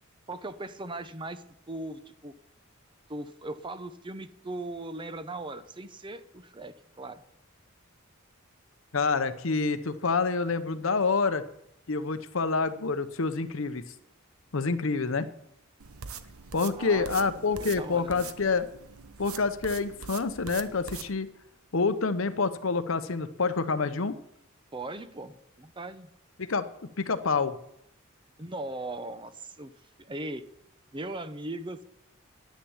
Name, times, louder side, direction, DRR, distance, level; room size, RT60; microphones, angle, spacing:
voice 1, 0.3-2.3 3.1-7.2 16.8-18.3 24.7-26.1 28.4-29.7 30.0-30.5 30.9-31.8, right 2 dB, 25° right, 11 dB, 0.7 m, -39 dB
voice 2, 8.9-11.4 11.9-13.8 14.5-15.3 16.5-18.7 19.2-21.3 21.7-24.2 26.4-26.6 27.0-27.6, left 4 dB, 65° left, 12 dB, 0.8 m, -27 dB
sound 1, 15.8-21.1, right 7 dB, 90° right, 1.0 m, -43 dB
10.0 x 10.0 x 7.2 m, 0.79 s
head